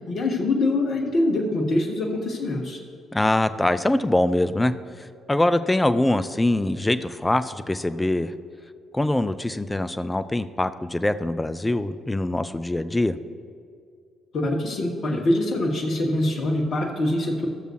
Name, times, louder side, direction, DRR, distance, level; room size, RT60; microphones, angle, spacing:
voice 1, 0.1-2.8 14.3-17.5, left 1 dB, 50° left, 2 dB, 1.3 m, -24 dB
voice 2, 3.1-4.7 5.0-8.3 8.9-13.2, left 1 dB, 15° left, 12 dB, 0.4 m, -23 dB
14.5 x 6.6 x 3.1 m, 2.2 s
figure-of-eight pair, 45°, 0 cm